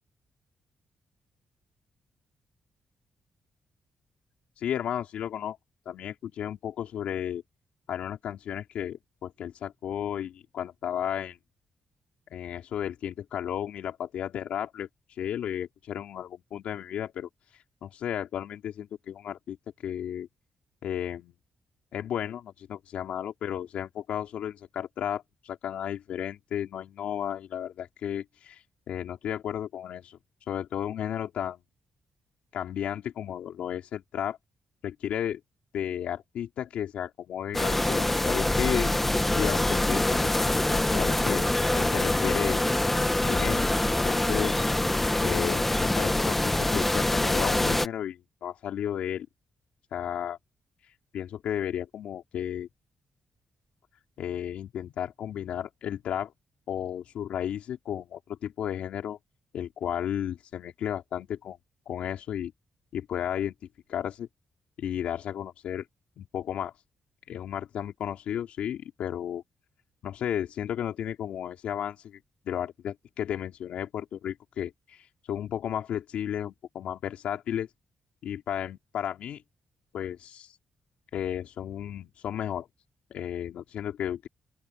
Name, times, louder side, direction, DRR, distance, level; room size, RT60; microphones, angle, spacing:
voice 1, 4.6-5.6 5.9-7.4 7.9-11.4 12.3-14.9 15.2-19.6 19.8-20.3 20.8-21.3 21.9-28.6 28.9-30.2 30.5-31.6 32.5-34.4 34.8-35.4 35.7-38.9 39.3-40.3 40.7-41.5 41.7-42.6 43.2-43.7 44.0-44.7 45.2-49.3 49.9-50.4 51.1-52.7 54.2-56.3 56.7-59.2 59.5-61.6 61.9-62.5 62.9-63.5 63.9-64.3 64.8-65.8 66.2-66.7 67.3-69.4 70.0-72.2 72.4-77.7 78.2-79.4 79.9-80.5 81.1-82.7 83.1-84.3, left 10 dB, 80° left, 3.9 m, -33 dB
sound 1, 37.5-47.9, left 1 dB, 10° left, 1.1 m, -25 dB
open air
wide cardioid pair, 160°, 2 cm